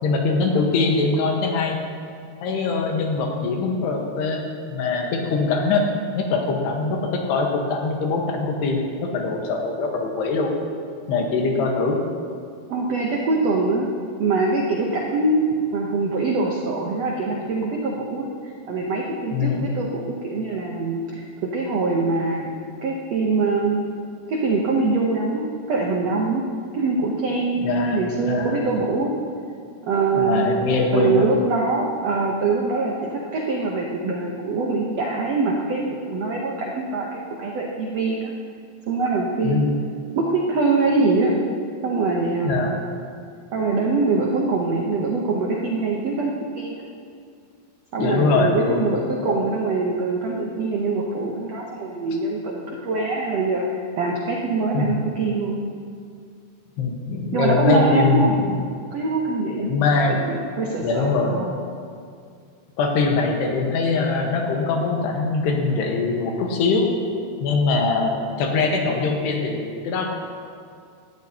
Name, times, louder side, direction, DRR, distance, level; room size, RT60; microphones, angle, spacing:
voice 1, 0.0-1.8 2.4-4.4 4.7-5.8 6.1-10.5 11.1-12.0 19.3-19.7 27.6-28.6 30.2-31.2 39.4-39.7 42.4-42.7 48.0-49.5 54.7-54.8 56.8-58.5 59.5-60.1 60.8-61.4 62.8-66.9 67.4-68.1 68.4-70.1, left 4 dB, 90° left, 1 dB, 3.5 m, -22 dB
voice 2, 12.7-13.9 14.2-21.2 21.5-22.4 22.8-23.8 24.3-26.4 26.7-29.1 29.8-38.3 38.9-39.6 40.1-41.3 41.8-42.8 43.5-46.8 47.9-55.6 57.3-58.3 58.9-59.7 60.1-61.5, right 3 dB, 85° right, -2 dB, 1.4 m, -23 dB
17.5 x 13.0 x 2.9 m, 2.2 s
omnidirectional pair, 4.6 m